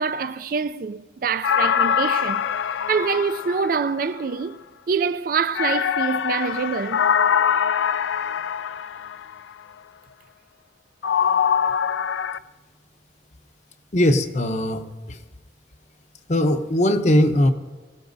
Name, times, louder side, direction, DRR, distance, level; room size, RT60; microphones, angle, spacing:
voice 1, 0.0-2.4 2.9-4.6 4.9-7.0, right 5 dB, 50° right, 0.3 m, -25 dB
sound 1, 1.4-4.3 5.5-9.4 11.0-12.4, left 8 dB, 85° left, 0.4 m, -23 dB
voice 2, 13.9-15.2 16.3-17.5, left 1 dB, 40° left, 0.7 m, -20 dB
23.0 x 17.0 x 2.7 m
head